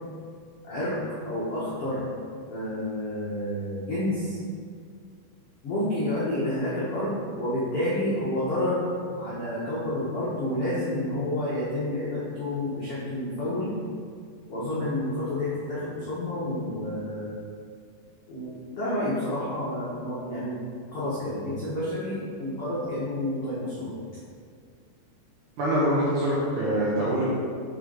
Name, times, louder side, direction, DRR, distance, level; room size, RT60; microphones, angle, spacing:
voice 1, 0.6-2.1 2.5-4.4 5.6-8.9 9.2-13.7 14.5-17.3 18.3-20.6 20.9-23.9, left 1 dB, 85° left, -10 dB, 1.3 m, -29 dB
voice 2, 25.6-27.2, right 1 dB, 70° right, -8 dB, 1.9 m, -24 dB
7.1 x 5.0 x 4.0 m, 2.1 s
omnidirectional pair, 5.0 m